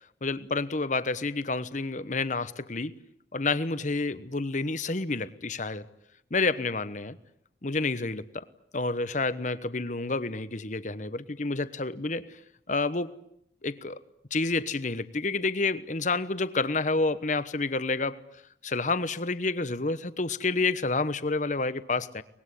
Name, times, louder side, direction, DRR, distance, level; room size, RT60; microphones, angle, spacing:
voice 1, 0.2-3.0 3.3-5.9 6.3-7.2 7.6-8.5 8.7-12.4 12.7-13.1 13.6-14.0 14.3-18.2 18.6-22.2, left 3 dB, 45° left, 14 dB, 1.1 m, -29 dB
24.5 x 20.5 x 10.0 m, 0.73 s
head